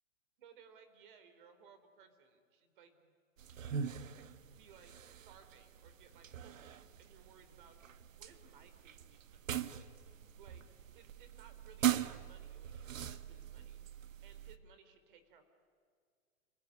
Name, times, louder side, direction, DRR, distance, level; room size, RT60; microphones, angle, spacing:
voice 1, 0.4-3.1 3.6-4.9 5.2-9.8 10.4-13.8 14.2-15.4, right 6 dB, 40° right, 9 dB, 3.9 m, -62 dB
sound 1, 3.4-14.6, right 10 dB, 80° right, 1.5 m, -41 dB
30.0 x 20.0 x 9.9 m, 2.1 s
hypercardioid pair, 175°, 39 cm